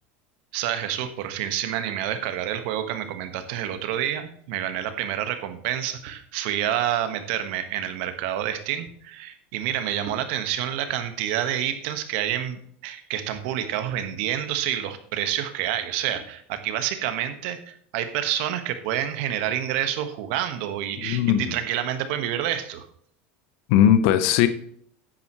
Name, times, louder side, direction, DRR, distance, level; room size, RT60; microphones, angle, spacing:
voice 1, 0.5-22.9, right 11 dB, 70° right, 9 dB, 1.5 m, -28 dB
voice 2, 21.0-21.5 23.7-24.5, left 10 dB, 70° left, 11 dB, 0.9 m, -19 dB
10.5 x 9.1 x 3.1 m, 0.64 s
supercardioid pair, 105°, 6 cm